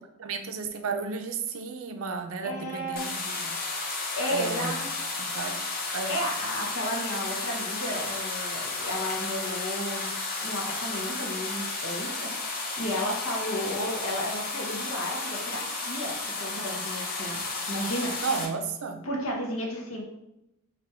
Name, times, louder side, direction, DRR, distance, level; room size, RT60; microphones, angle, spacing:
voice 1, 0.2-3.5 4.3-4.7 5.2-5.6 5.9-6.2 18.2-19.0, right 5 dB, 75° right, 6 dB, 0.5 m, -33 dB
voice 2, 2.4-3.1 4.1-4.9 6.1-10.1 10.4-18.2 19.0-20.0, equal, 70° left, -1 dB, 1.2 m, -33 dB
sound 1, 3.0-18.5, left 3 dB, 40° left, 0.8 m, -33 dB
4.1 x 2.6 x 4.4 m, 0.86 s
head